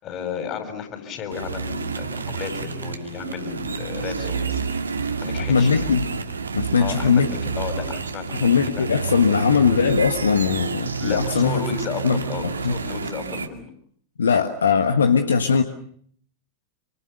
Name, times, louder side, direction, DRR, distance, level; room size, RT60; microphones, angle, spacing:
voice 1, 0.0-4.6 5.2-5.9 6.8-8.9 11.0-13.7, left 7 dB, 35° left, 7 dB, 6.2 m, -33 dB
sound 1, 1.3-13.5, right 5 dB, 75° right, 2.2 m, -29 dB
voice 2, 5.5-6.1 6.5-7.3 8.4-11.6 12.0-12.8 14.2-15.6, left 6 dB, 70° left, 8 dB, 1.5 m, -20 dB
28.0 x 25.5 x 6.7 m, 0.63 s
figure-of-eight pair, 90°, 0 cm